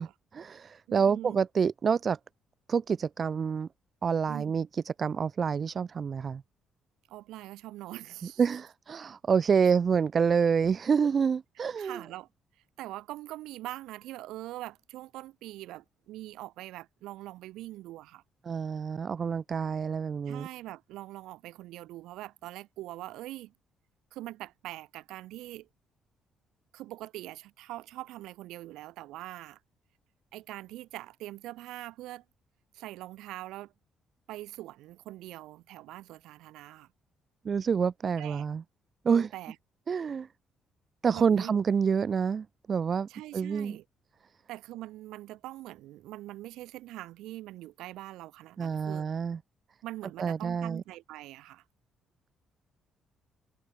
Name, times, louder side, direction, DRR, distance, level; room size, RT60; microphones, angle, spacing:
voice 1, 0.0-2.2 2.7-3.7 4.0-6.4 8.4-12.0 18.5-20.5 37.4-38.6 39.0-39.3 39.9-40.3 41.0-43.8 48.6-49.4 50.2-50.8, right 6 dB, 45° right, 0.5 m, -27 dB
voice 2, 0.9-1.4 4.3-4.5 7.1-8.6 11.8-12.3 12.8-18.2 20.3-23.5 24.1-25.7 26.7-29.6 30.3-32.2 32.7-33.7 34.3-36.9 38.2-38.5 39.1-39.6 41.1-41.6 43.1-43.8 44.5-49.1 49.8-51.6, right 16 dB, 90° right, 2.2 m, -43 dB
cardioid pair, 90°, 0 cm